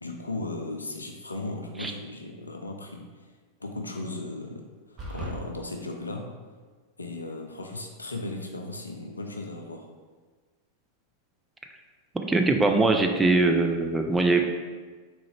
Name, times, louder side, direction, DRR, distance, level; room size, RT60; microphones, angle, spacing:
voice 1, 0.0-3.3 3.6-4.6 4.9-6.3 7.0-9.9, left 2 dB, 80° left, 3 dB, 0.4 m, -36 dB
sound 1, 5.0-5.4, equal, 30° right, 1.0 m, -35 dB
voice 2, 12.1-14.5, right 3 dB, 10° right, 4 dB, 0.3 m, -22 dB
3.6 x 3.0 x 3.2 m, 1.4 s
figure-of-eight pair, 90°, 0 cm